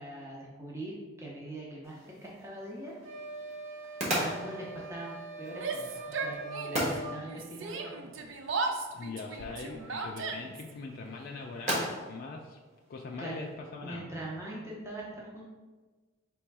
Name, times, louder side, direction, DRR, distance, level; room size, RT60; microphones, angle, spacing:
voice 1, 0.0-2.9 4.1-8.3 10.4-10.6 13.2-13.5 13.8-15.5, right 1 dB, 15° right, -5 dB, 0.6 m, -42 dB
sound 1, 1.8-13.5, equal, 35° right, 1.1 m, -39 dB
sound 2, 3.0-7.3, right 3 dB, 85° right, 1.1 m, -42 dB
Yell, 5.5-7.0 7.2-10.7, right 3 dB, 65° right, 0.4 m, -36 dB
voice 2, 8.9-12.6 12.9-14.2, left 3 dB, 45° left, 0 dB, 0.3 m, -42 dB
3.4 x 3.1 x 4.6 m, 1.3 s
head